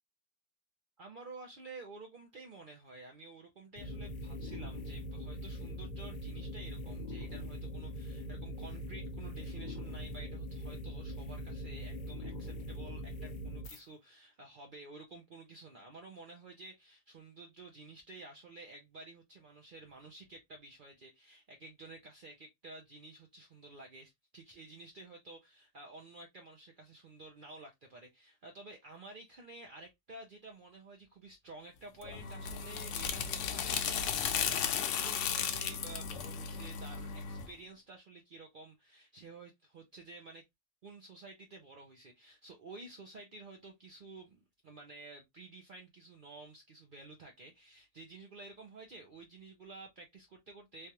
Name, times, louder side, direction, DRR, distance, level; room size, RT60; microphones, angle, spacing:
voice 1, 1.0-40.4 40.8-50.9, right 3 dB, 50° right, 0.7 m, -52 dB
sound 1, 3.8-13.8, equal, 50° left, 0.7 m, -42 dB
sound 2, 32.0-37.5, left 7 dB, 90° left, 0.9 m, -35 dB
3.2 x 2.4 x 2.7 m
omnidirectional pair, 1.2 m